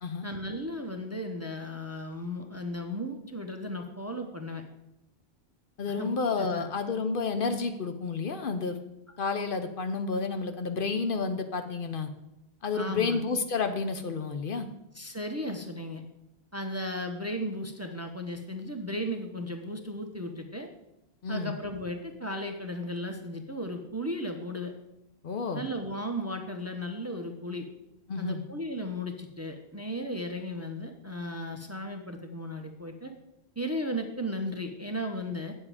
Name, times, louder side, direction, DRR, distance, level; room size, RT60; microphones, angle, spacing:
voice 1, 0.2-4.6 6.0-6.1 6.4-6.6 12.7-13.2 14.9-16.0 16.5-20.7 21.3-24.7 25.5-27.7 28.2-33.1 33.6-35.5, equal, 15° right, 5 dB, 0.7 m, -35 dB
voice 2, 5.8-8.8 9.2-12.1 12.6-14.7 21.2-21.5 25.2-25.6 28.1-28.4, left 4 dB, 60° left, 8 dB, 0.8 m, -30 dB
8.8 x 7.3 x 4.9 m, 0.86 s
omnidirectional pair, 1.1 m